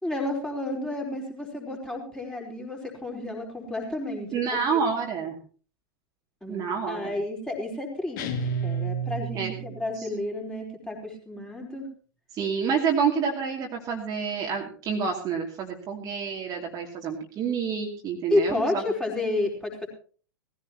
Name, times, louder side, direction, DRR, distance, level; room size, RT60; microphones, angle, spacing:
voice 1, 0.0-4.8 6.4-6.6 6.9-8.3 8.6-11.9 18.3-19.9, left 2 dB, 5° left, 0 dB, 4.4 m, -31 dB
voice 2, 4.3-5.4 6.5-7.1 9.3-9.5 12.3-18.6, right 6 dB, 30° right, 0 dB, 2.6 m, -28 dB
sound 1, 8.2-9.9, right 4 dB, 50° left, 2.2 m, -30 dB
19.5 x 15.5 x 3.0 m, 0.40 s
figure-of-eight pair, 100°, 13 cm